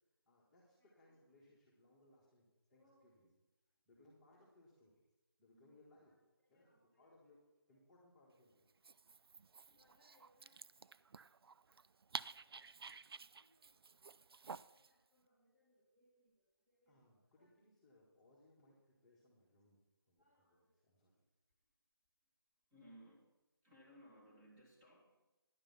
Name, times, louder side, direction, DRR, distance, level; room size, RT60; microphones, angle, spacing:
voice 1, 0.3-3.3 3.9-5.0 5.4-6.1 6.5-7.4 7.7-8.7 16.9-19.8 20.1-21.2, left 2 dB, 5° left, -11 dB, 1.9 m, -69 dB
voice 2, 0.8-1.4 2.7-3.1 3.7-3.8 4.7-4.8 5.4-7.3 7.7-7.8 9.7-11.0 13.4-14.1 14.4-17.6 20.2-20.9 21.6-21.7 22.7-23.3 23.6-25.3, equal, 15° right, -4 dB, 2.3 m, -68 dB
Dog, 8.7-14.9, right 5 dB, 70° right, 0.4 m, -52 dB
10.5 x 8.9 x 5.7 m, 1.0 s
figure-of-eight pair, 165°, 13 cm